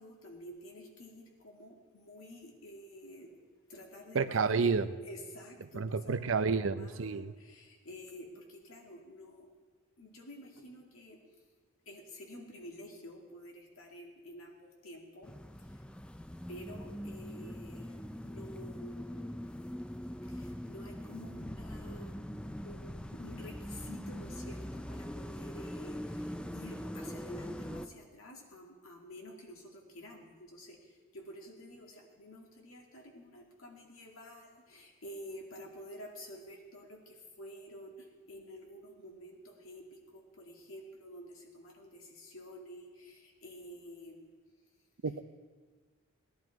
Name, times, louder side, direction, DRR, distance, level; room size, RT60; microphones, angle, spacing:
voice 1, 0.0-3.4 3.7-9.5 10.0-11.2 11.9-15.8 16.5-19.3 20.3-22.2 22.6-44.3, equal, 85° left, 0 dB, 2.3 m, -50 dB
voice 2, 4.1-4.8 5.7-7.3 45.0-45.2, right 5 dB, 70° right, 12 dB, 0.6 m, -30 dB
sound 1, 15.2-27.9, equal, 5° left, 0.3 m, -42 dB
18.0 x 11.0 x 4.7 m, 1.4 s
head